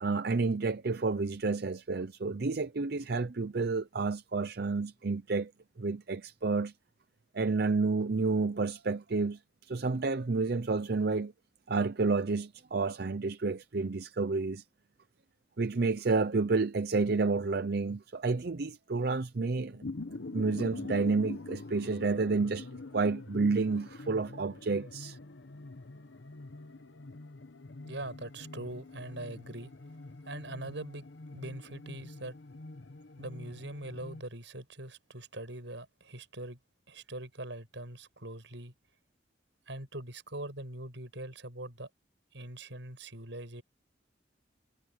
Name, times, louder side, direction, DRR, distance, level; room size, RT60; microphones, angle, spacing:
voice 1, 0.0-5.5 5.8-6.7 7.3-11.3 11.7-14.6 15.6-19.8 20.3-25.2, right 3 dB, 55° right, 0.6 m, -30 dB
sound 1, 19.5-34.2, left 2 dB, 75° left, 1.1 m, -45 dB
voice 2, 27.8-29.7 30.2-32.4 33.2-36.6 36.9-38.7 39.7-41.9 42.3-43.6, right 1 dB, 75° right, 6.5 m, -42 dB
head